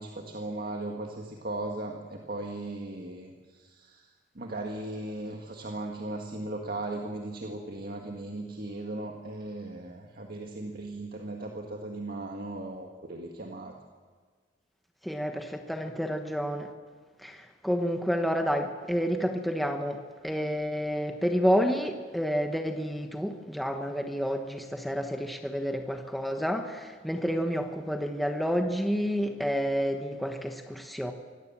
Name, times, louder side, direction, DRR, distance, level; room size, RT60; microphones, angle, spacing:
voice 1, 0.0-4.1 4.4-13.7, right 2 dB, 55° right, 1 dB, 1.9 m, -37 dB
voice 2, 15.0-16.7 17.2-31.1, equal, ahead, 4 dB, 1.2 m, -29 dB
24.0 x 17.5 x 7.4 m, 1.5 s
head